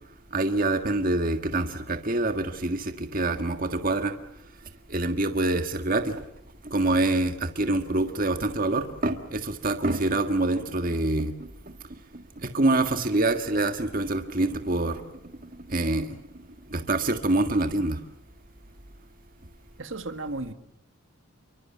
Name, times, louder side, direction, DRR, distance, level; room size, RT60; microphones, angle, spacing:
voice 1, 0.3-4.1 4.9-6.2 6.6-11.3 12.4-15.0 15.7-16.2 16.7-18.0, right 2 dB, 40° right, 1.7 m, -25 dB
voice 2, 19.8-20.5, right 2 dB, 65° right, 1.9 m, -34 dB
29.5 x 24.0 x 7.4 m
head